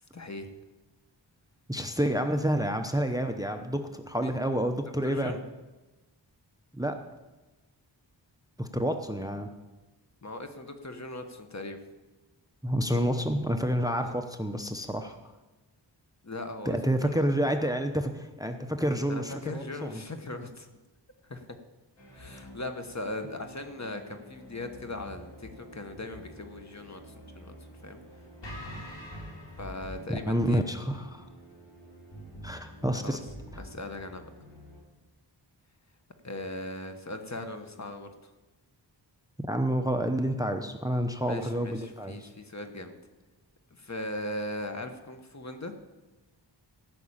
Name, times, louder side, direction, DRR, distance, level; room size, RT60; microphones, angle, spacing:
voice 1, 0.1-0.5 4.2-4.4 5.0-5.4 10.2-11.8 14.0-14.2 16.2-17.2 19.1-20.7 21.2-21.6 22.1-27.5 27.8-28.0 29.6-30.8 33.0-33.2 33.6-34.3 36.2-38.3 41.2-43.0 43.7-45.7, left 2 dB, 40° left, 7 dB, 1.3 m, -39 dB
voice 2, 1.7-5.4 6.7-7.0 8.6-9.5 12.6-15.2 16.6-20.0 30.3-31.3 32.4-33.2 39.5-42.3, equal, 10° right, 6 dB, 0.8 m, -29 dB
sound 1, 22.0-34.8, equal, 75° left, 4.2 m, -47 dB
15.5 x 6.1 x 8.8 m, 1.1 s
wide cardioid pair, 95°, 44 cm